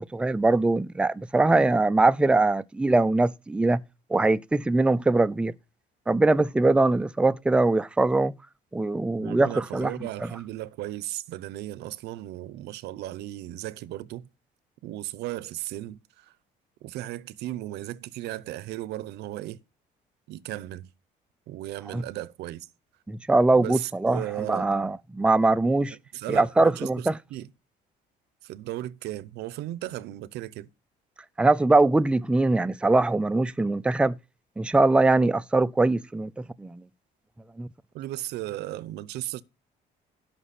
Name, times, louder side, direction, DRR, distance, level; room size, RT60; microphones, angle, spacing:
voice 1, 0.0-3.8 4.1-5.5 6.1-8.3 8.7-9.9 10.2-10.3 21.9-22.0 23.1-26.0 26.3-27.2 31.4-34.1 34.6-36.3 36.6-36.8 37.6-37.7, right 2 dB, 5° right, 0.5 m, -22 dB
voice 2, 9.2-14.3 14.8-16.3 16.8-19.6 20.3-20.9 21.5-22.7 23.5-24.7 26.1-27.5 28.4-30.7 37.9-39.4, right 15 dB, 85° right, 0.8 m, -36 dB
16.5 x 6.1 x 4.2 m
cardioid pair, 110°, 17 cm